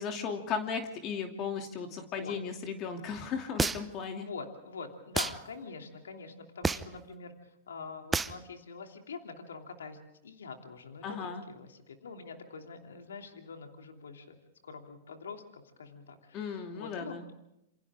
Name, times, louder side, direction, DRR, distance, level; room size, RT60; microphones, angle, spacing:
voice 1, 0.0-4.3 11.0-11.4 16.3-17.2, left 6 dB, 40° left, 4 dB, 2.8 m, -36 dB
voice 2, 2.0-2.4 4.2-14.4 14.6-17.3, left 5 dB, 80° left, 4 dB, 2.9 m, -45 dB
sound 1, 3.6-4.0 5.1-5.4 6.6-7.0 8.1-8.4, right 4 dB, 10° right, 0.7 m, -29 dB
28.0 x 26.0 x 3.7 m, 0.84 s
hypercardioid pair, 110°, 0 cm